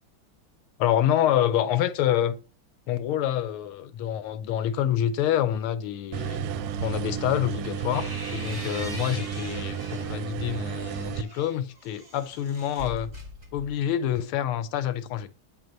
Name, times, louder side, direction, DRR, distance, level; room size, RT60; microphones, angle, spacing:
voice 1, 0.8-2.4 2.9-6.4 6.8-13.1 13.5-15.5, left 10 dB, 85° left, 1.5 m, -27 dB
sound 1, 6.1-11.2, right 8 dB, 85° right, 1.5 m, -32 dB
sound 2, 7.5-10.2 10.6-14.0, equal, 25° right, 1.0 m, -42 dB
9.0 x 3.1 x 5.1 m
omnidirectional pair, 2.4 m